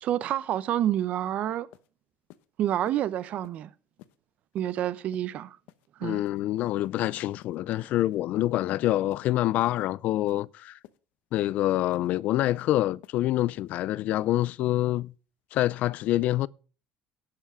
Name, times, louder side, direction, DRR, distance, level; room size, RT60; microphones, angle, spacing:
voice 1, 0.0-1.7 2.6-3.7 4.5-5.6 6.0-6.2, right 11 dB, 55° right, 0.8 m, -28 dB
sound 1, 1.2-1.3 1.7-1.9 2.3-2.5 2.9-3.0 3.4-3.6 4.0-4.2 4.6-4.7 5.1-5.3 5.7-5.9 6.3-6.4 6.8-7.0 7.4-7.6 8.0-8.2 8.5-8.7 9.1-9.3 9.7-9.8 10.3-10.4 10.8-11.0 11.4-11.5 11.9-12.1 12.5-12.6 13.0-13.2 13.6-13.7, left 15 dB, 75° left, 0.9 m, -53 dB
voice 2, 6.0-10.7 11.3-15.1 15.5-16.5, left 15 dB, 60° left, 0.4 m, -26 dB
11.0 x 5.8 x 7.4 m
supercardioid pair, 110°, 3 cm